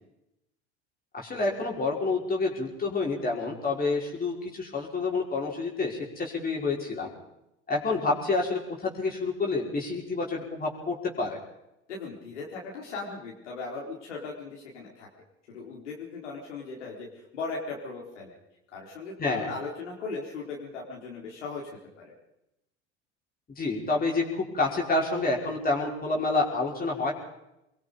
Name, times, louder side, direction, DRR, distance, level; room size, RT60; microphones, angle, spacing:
voice 1, 1.1-7.1 7.7-11.4 19.2-19.5 23.6-27.1, left 3 dB, 25° left, -2 dB, 5.6 m, -28 dB
voice 2, 11.9-15.1 15.5-18.4 18.7-21.6 22.0-22.1, left 4 dB, 75° left, -3 dB, 4.6 m, -38 dB
25.5 x 22.5 x 5.4 m, 0.86 s
figure-of-eight pair, 75°, 35 cm